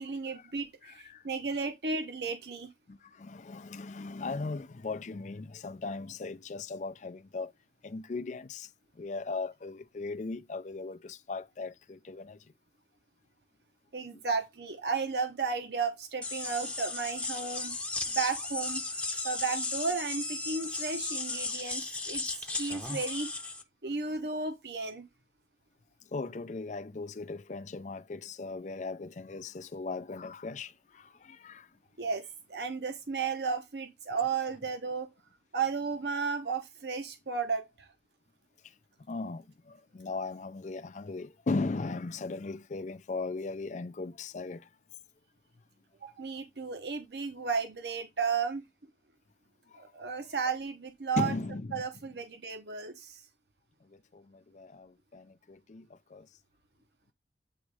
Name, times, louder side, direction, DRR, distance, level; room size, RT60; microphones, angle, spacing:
voice 1, 0.0-2.7 13.9-17.8 18.1-23.3 23.8-25.1 32.0-35.1 35.5-37.9 46.0-48.6 49.7-51.3 51.7-53.2, right 5 dB, 70° right, 1.0 m, -34 dB
voice 2, 0.8-1.2 2.9-7.5 7.8-12.5 14.1-14.2 24.1-24.2 26.1-31.8 38.6-38.7 39.1-44.7 49.7-49.8 51.2-51.8 53.8-56.3, left 3 dB, 40° left, 0.4 m, -38 dB
sound 1, 16.2-23.6, left 3 dB, 5° left, 0.8 m, -35 dB
8.5 x 3.1 x 4.8 m
head